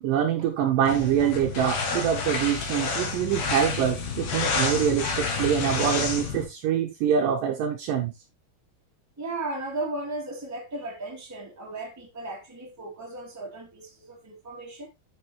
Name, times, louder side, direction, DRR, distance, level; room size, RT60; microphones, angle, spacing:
voice 1, 0.0-8.1, right 9 dB, 70° right, 2.3 m, -25 dB
sound 1, 0.9-6.4, left 4 dB, 60° left, 3.0 m, -29 dB
voice 2, 9.2-14.9, right 2 dB, 5° right, 2.1 m, -35 dB
9.3 x 7.0 x 3.0 m
omnidirectional pair, 4.5 m